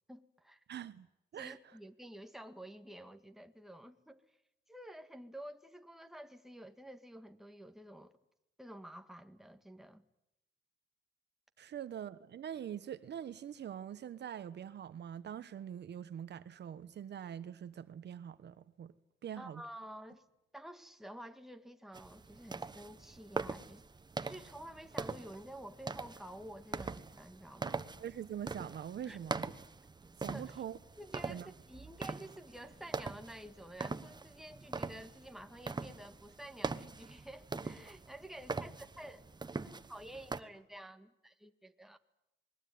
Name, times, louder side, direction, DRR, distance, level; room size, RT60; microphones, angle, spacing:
voice 1, 0.1-0.6 1.3-4.2 4.7-8.1 8.6-10.0 19.4-20.2 20.5-23.8 24.2-27.8 29.1-29.2 30.3-30.5 31.0-39.2 39.6-42.0, right 1 dB, ahead, 1.9 m, -50 dB
voice 2, 0.7-1.1 1.3-1.6 11.6-18.9 19.2-19.6 27.6-29.5 30.2-30.8 31.3-31.5, right 9 dB, 60° right, 1.2 m, -44 dB
sound 1, 21.9-40.4, right 3 dB, 20° right, 1.2 m, -43 dB
27.5 x 21.0 x 9.5 m
cardioid pair, 90°, 20 cm